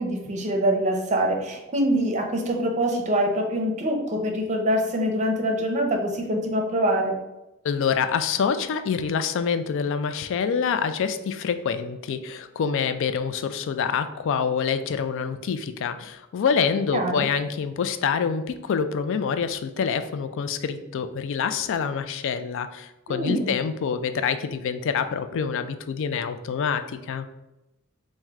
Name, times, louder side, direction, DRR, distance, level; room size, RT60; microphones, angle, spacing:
voice 1, 0.0-7.2 16.9-17.3 23.1-23.6, right 1 dB, 35° right, 2 dB, 0.6 m, -24 dB
voice 2, 7.6-27.3, left 6 dB, 60° left, 10 dB, 0.3 m, -26 dB
4.5 x 2.1 x 3.5 m, 0.94 s
head